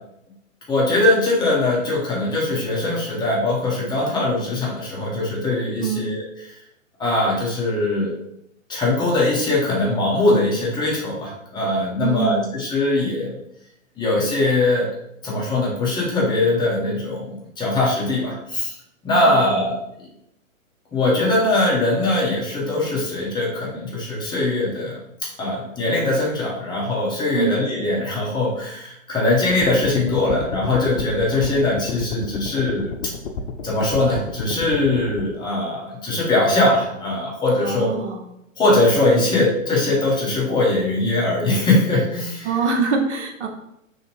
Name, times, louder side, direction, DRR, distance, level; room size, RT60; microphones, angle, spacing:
voice 1, 0.7-6.2 7.0-8.1 8.7-13.3 14.0-14.9 15.2-18.7 19.0-19.8 20.9-25.0 25.4-32.9 33.6-37.9 38.6-42.5, left 2 dB, 10° left, -5 dB, 0.9 m, -21 dB
voice 2, 12.0-12.6 19.2-19.8 27.3-27.6 37.6-38.2 42.4-43.5, right 5 dB, 55° right, 3 dB, 0.8 m, -24 dB
sound 1, 29.5-35.2, left 5 dB, 55° left, 0.6 m, -31 dB
3.4 x 2.7 x 4.3 m, 0.80 s
hypercardioid pair, 130°, 40 cm